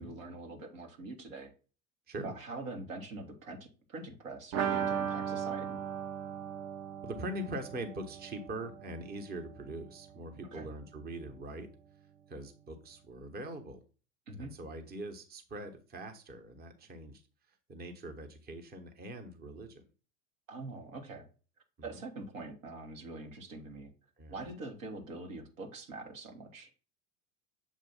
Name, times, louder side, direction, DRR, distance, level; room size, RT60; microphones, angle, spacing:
voice 1, 0.0-1.5 2.2-5.8 10.5-10.7 14.3-14.5 20.5-21.3 21.8-23.9 24.3-26.7, right 2 dB, 80° right, 2 dB, 1.4 m, -44 dB
sound 1, 4.5-10.1 10.4-10.5 10.8-10.9, right 8 dB, 40° right, 0.7 m, -37 dB
voice 2, 7.0-11.7 12.3-13.8 14.4-17.2 17.7-19.8 21.9-22.0 24.2-24.4, right 1 dB, 25° right, 6 dB, 1.0 m, -42 dB
7.3 x 2.5 x 5.5 m, 0.36 s
hypercardioid pair, 85°, 39 cm